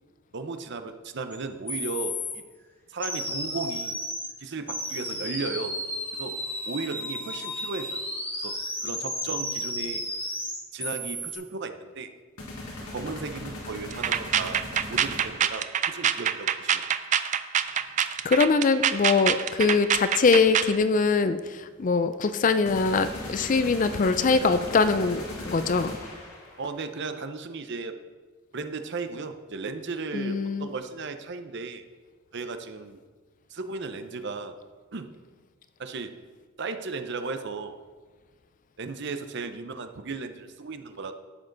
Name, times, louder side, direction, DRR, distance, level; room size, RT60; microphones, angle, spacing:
voice 1, 0.3-2.4 2.9-4.0 4.4-5.8 6.1-6.4 6.7-8.0 8.4-8.5 8.8-10.0 10.7-12.1 12.9-14.6 14.9-16.8 17.1-17.2 26.6-27.9 28.5-31.8 32.3-33.0 33.5-34.6 34.9-35.1 35.8-36.1 36.6-37.8 38.8-41.1, right 4 dB, 55° right, 8 dB, 0.7 m, -35 dB
sound 1, 1.3-1.4 1.7-2.4 3.0-4.3 4.7-11.3, left 1 dB, 10° left, 1.4 m, -33 dB
sound 2, 12.4-15.7 22.7-26.7, left 1 dB, 90° left, 2.1 m, -38 dB
sound 3, 13.9-20.8, right 9 dB, 35° right, 0.3 m, -25 dB
voice 2, 18.2-26.0 30.1-30.7, left 4 dB, 35° left, 11 dB, 0.4 m, -23 dB
11.5 x 7.5 x 3.9 m, 1.4 s
head